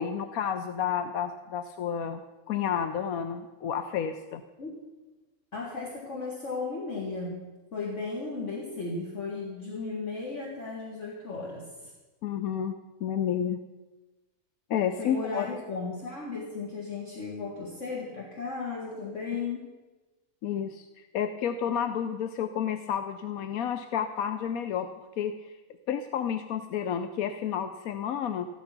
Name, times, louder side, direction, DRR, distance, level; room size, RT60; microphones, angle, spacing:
voice 1, 0.0-2.2 2.5-4.4 12.2-12.8 13.0-13.6 14.7-15.6 20.4-24.9 25.2-25.3 25.9-28.5, left 8 dB, 75° left, 9 dB, 1.1 m, -30 dB
voice 2, 5.5-7.4 7.7-11.9 15.0-19.7, left 4 dB, 55° left, -3 dB, 2.2 m, -35 dB
14.5 x 12.5 x 6.0 m, 1.2 s
omnidirectional pair, 1.6 m